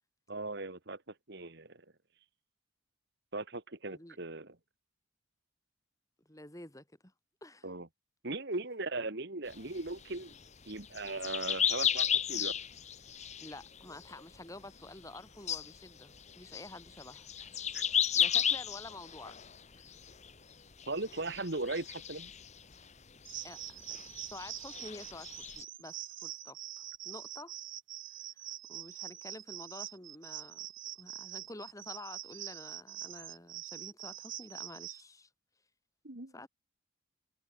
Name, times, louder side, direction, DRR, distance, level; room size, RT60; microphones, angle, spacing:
voice 1, 0.3-1.0 1.3-1.8 3.3-4.5 7.6-7.9 8.2-10.3 10.7-12.5 17.7-17.8 20.9-22.3 36.0-36.3, right 2 dB, 55° right, 2.0 m, -38 dB
voice 2, 6.3-7.1 7.4-7.7 13.4-17.3 18.2-19.4 19.8-19.9 23.4-24.0 24.3-27.5 28.1-28.2 28.7-30.7 31.0-35.3 36.3-36.5, left 2 dB, 15° left, 3.5 m, -49 dB
sound 1, 9.5-14.4 14.6-15.2 15.5-20.5 20.8-22.9 23.2-25.6, left 9 dB, 35° left, 1.4 m, -34 dB
sound 2, 23.3-35.0, right 13 dB, 70° right, 2.0 m, -44 dB
head